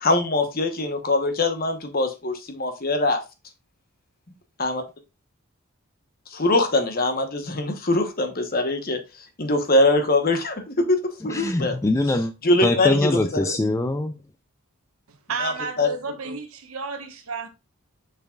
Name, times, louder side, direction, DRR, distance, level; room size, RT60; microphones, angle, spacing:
voice 1, 0.0-3.2 4.6-4.8 6.3-9.0 9.4-11.8 12.4-13.1 13.5-13.6 15.4-15.5 15.8-15.9, left 2 dB, 40° left, 1.1 m, -22 dB
voice 2, 11.3-12.3 12.6-14.2, left 2 dB, 15° left, 0.3 m, -23 dB
voice 3, 15.1-17.5, right 4 dB, 70° right, 1.3 m, -32 dB
6.9 x 5.6 x 2.4 m
head